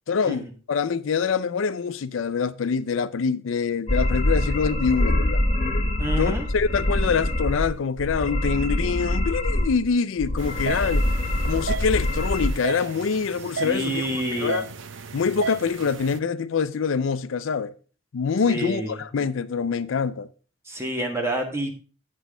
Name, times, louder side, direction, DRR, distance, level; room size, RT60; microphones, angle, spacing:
voice 1, 0.1-5.4 6.2-11.1 11.4-14.7 15.1-17.7 18.1-20.3, left 5 dB, 80° left, 0.5 m, -25 dB
sound 1, 3.9-7.7 8.0-9.9 10.2-12.5, left 1 dB, 35° left, 1.1 m, -24 dB
voice 2, 6.0-6.4 13.6-14.6 18.5-18.9 20.7-21.7, right 1 dB, 15° right, 1.5 m, -28 dB
sound 2, 10.4-16.2, right 5 dB, 75° right, 0.7 m, -34 dB
8.3 x 6.1 x 4.8 m
head